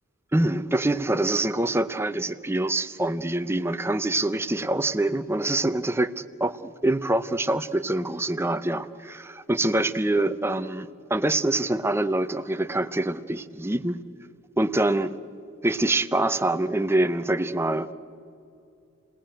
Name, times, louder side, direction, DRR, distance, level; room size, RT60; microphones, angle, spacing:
voice 1, 0.3-14.0 14.6-15.1 15.6-17.9, right 2 dB, 10° right, 10 dB, 0.7 m, -25 dB
29.5 x 19.0 x 9.1 m, 2.5 s
head